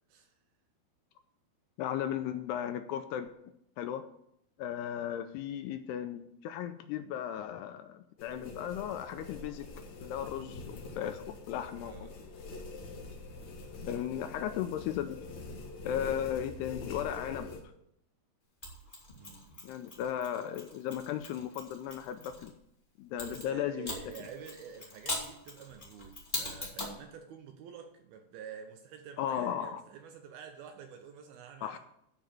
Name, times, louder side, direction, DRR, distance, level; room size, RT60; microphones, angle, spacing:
voice 1, 1.8-3.3 3.8-4.1 4.6-9.7 10.0-11.9 13.8-15.2 15.8-17.5 19.6-22.5 23.0-23.9 29.2-29.8 31.6-31.8, left 10 dB, 80° left, 8 dB, 2.5 m, -36 dB
sound 1, 8.2-17.6, left 3 dB, 50° left, 2.5 m, -45 dB
voice 2, 11.8-12.3 19.2-19.5 23.2-31.8, right 7 dB, 75° right, 5 dB, 2.4 m, -48 dB
Mechanisms, 18.6-22.5 23.2-27.0, left 2 dB, 20° left, 1.4 m, -42 dB
12.0 x 5.3 x 7.6 m, 0.75 s
omnidirectional pair, 5.0 m